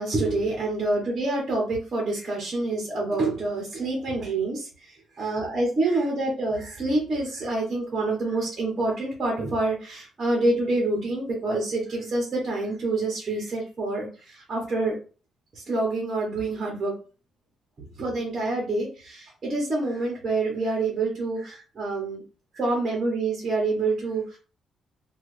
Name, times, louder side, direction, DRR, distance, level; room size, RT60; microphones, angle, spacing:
voice 1, 0.0-4.7 5.2-14.9 15.5-16.9 18.0-22.2 22.5-24.4, right 2 dB, 30° right, -2 dB, 1.0 m, -27 dB
3.1 x 2.3 x 3.2 m, 0.36 s
cardioid pair, 175°, 0 cm